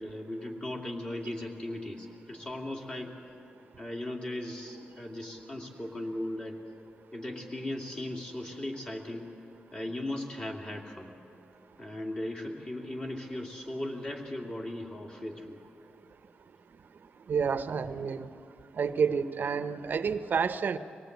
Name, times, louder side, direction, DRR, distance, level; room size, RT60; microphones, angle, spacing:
voice 1, 0.0-3.1 3.8-6.6 7.1-9.3 9.7-11.1 11.8-15.6, left 1 dB, 30° left, 1 dB, 2.6 m, -37 dB
voice 2, 17.3-18.3 18.8-20.8, right 6 dB, 60° right, 11 dB, 0.8 m, -29 dB
24.0 x 18.0 x 8.1 m, 2.7 s
wide cardioid pair, 120°, 4 cm